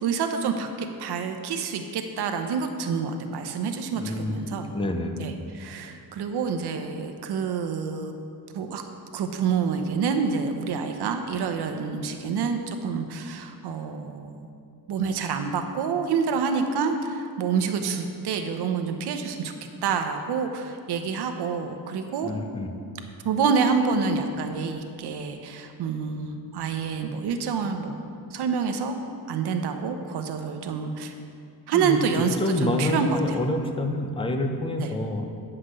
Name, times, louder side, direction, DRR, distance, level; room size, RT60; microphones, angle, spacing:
voice 1, 0.0-4.7 5.2-8.1 8.5-8.8 9.1-14.5 14.9-19.5 19.8-22.3 23.2-28.0 28.3-29.0 29.3-31.1 31.7-33.4 34.8-34.9, right 5 dB, 80° right, 6 dB, 0.9 m, -27 dB
voice 2, 4.0-5.3 22.2-22.7 31.7-35.2, left 1 dB, 15° left, 5 dB, 0.6 m, -28 dB
9.6 x 5.9 x 6.6 m, 2.4 s
wide cardioid pair, 170°, 39 cm